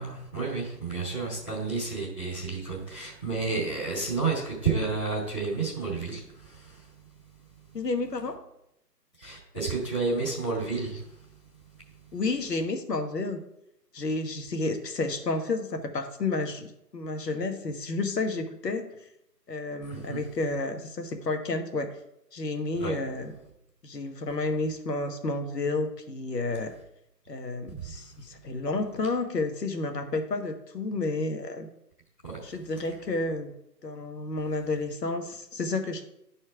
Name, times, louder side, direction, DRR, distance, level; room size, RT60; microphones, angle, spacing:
voice 1, 0.0-6.9 9.2-11.2 19.9-20.2 22.8-22.9 27.8-28.0 32.2-32.4, right 4 dB, 5° left, -16 dB, 0.9 m, -31 dB
voice 2, 7.7-8.4 12.1-13.4 13.9-18.9 19.5-21.9 22.3-23.3 23.8-26.7 27.3-31.7 32.4-33.5 33.8-36.0, left 3 dB, 75° left, 5 dB, 1.4 m, -31 dB
12.0 x 4.4 x 4.7 m, 0.82 s
figure-of-eight pair, 160°, 50 cm